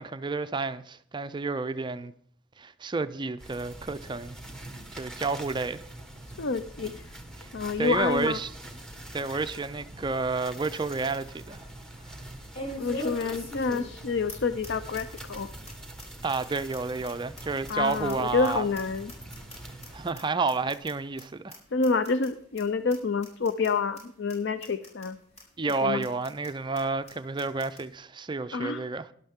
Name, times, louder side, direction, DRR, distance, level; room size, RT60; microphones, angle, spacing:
voice 1, 0.0-2.1 2.6-4.4 4.9-5.8 7.8-8.5 9.1-11.7 16.2-18.7 19.9-21.6 25.6-29.1, right 3 dB, 20° right, 0.4 m, -30 dB
sound 1, 3.4-20.1, right 1 dB, 5° left, 1.4 m, -44 dB
voice 2, 6.4-7.0 7.5-8.4 12.8-15.5 17.7-19.1 21.7-25.2 25.8-26.1 28.5-28.8, left 4 dB, 55° left, 0.5 m, -28 dB
sound 2, 10.2-10.3 10.7-10.8 12.5-14.0 14.3-14.4 14.6-14.7 14.9-15.4 15.6-15.7 16.0-16.1 16.3-18.5 18.7-19.9 20.1-20.2 20.5-20.9 21.2-21.3 21.5-21.6 21.8-22.3 22.6-22.7 22.9-23.0 23.2-23.7 23.9-24.0 24.3-24.4 24.6-25.1 25.4-25.5 25.7-25.8 26.0-26.5 26.7-26.8 27.1-27.2 27.4-27.8, equal, 30° left, 7.9 m, -40 dB
18.5 x 11.5 x 3.6 m
head